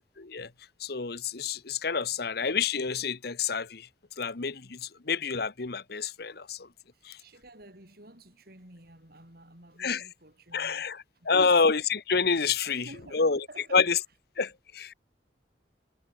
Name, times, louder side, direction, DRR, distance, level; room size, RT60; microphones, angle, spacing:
voice 1, 0.2-0.5 0.8-3.9 4.2-6.7 7.0-7.2 9.8-10.0 10.5-11.0 11.2-12.8 13.1-13.4 13.7-14.0 14.4-14.9, left 5 dB, 55° left, 1.0 m, -28 dB
voice 2, 6.9-10.9 11.1-11.6 12.6-13.9, right 2 dB, 55° right, 7.5 m, -52 dB
head